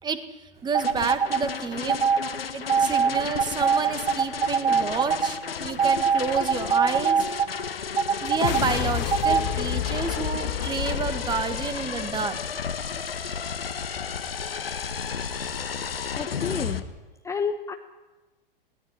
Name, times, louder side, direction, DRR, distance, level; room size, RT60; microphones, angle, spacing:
voice 1, 0.6-2.0 2.5-7.3 8.2-12.4 14.5-14.6, right 5 dB, 15° right, 11 dB, 1.8 m, -30 dB
sound 1, 0.7-16.8, left 7 dB, 80° left, 1.7 m, -33 dB
sound 2, 0.7-1.4 1.9-2.2 2.7-5.3 5.8-7.5 8.0-8.6 9.1-9.4, right 6 dB, 75° right, 1.1 m, -22 dB
sound 3, 8.3-12.8, left 12 dB, 50° left, 1.2 m, -31 dB
voice 2, 16.2-16.8 17.2-17.7, left 5 dB, 10° left, 6 dB, 0.9 m, -30 dB
20.5 x 17.0 x 10.0 m, 1.2 s
figure-of-eight pair, 110°, 29 cm